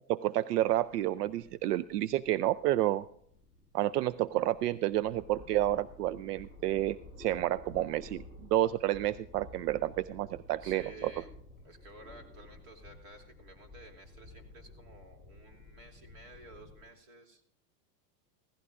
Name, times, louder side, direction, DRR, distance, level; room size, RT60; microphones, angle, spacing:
voice 1, 0.1-3.0 3.7-8.2 8.5-11.1, right 14 dB, 75° right, 18 dB, 0.6 m, -30 dB
sound 1, 0.6-16.9, left 2 dB, 15° right, 3.2 m, -53 dB
voice 2, 10.6-11.3 11.6-17.4, right 1 dB, 40° right, 3 dB, 2.9 m, -53 dB
16.5 x 15.0 x 2.5 m, 0.65 s
supercardioid pair, 145°, 48 cm